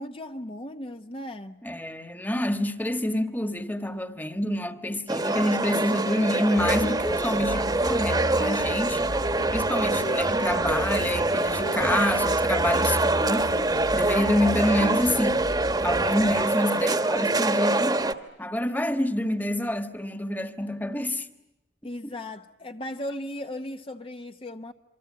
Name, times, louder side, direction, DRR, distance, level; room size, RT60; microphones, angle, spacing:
voice 1, 0.0-1.6 18.6-19.0 21.8-24.7, left 1 dB, 30° left, 0.9 m, -36 dB
voice 2, 1.6-9.1 9.5-15.5 15.8-18.1 18.4-21.3 22.0-22.1, left 1 dB, 10° left, 1.5 m, -27 dB
sound 1, 5.1-18.1, right 2 dB, 25° right, 1.3 m, -25 dB
sound 2, 6.6-16.5, equal, 55° left, 2.1 m, -35 dB
27.0 x 25.5 x 8.7 m
head